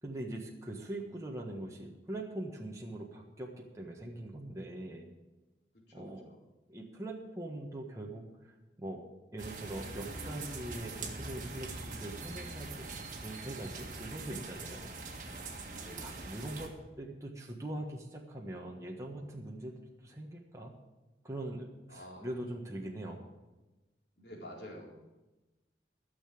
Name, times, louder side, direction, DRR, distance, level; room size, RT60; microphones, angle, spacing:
voice 1, 0.0-5.1 5.9-6.2 6.7-9.0 9.3-12.9 13.2-14.9 16.0-16.7 17.0-20.7 21.2-23.2, right 1 dB, 15° right, -1 dB, 1.5 m, -42 dB
voice 2, 5.9-6.4 14.1-14.3 14.9-15.1 15.8-16.3 21.9-22.2 24.2-24.9, equal, 75° left, -2 dB, 4.2 m, -49 dB
sound 1, 9.4-16.7, right 3 dB, 45° right, 1.9 m, -43 dB
13.0 x 7.0 x 8.7 m, 1.1 s
head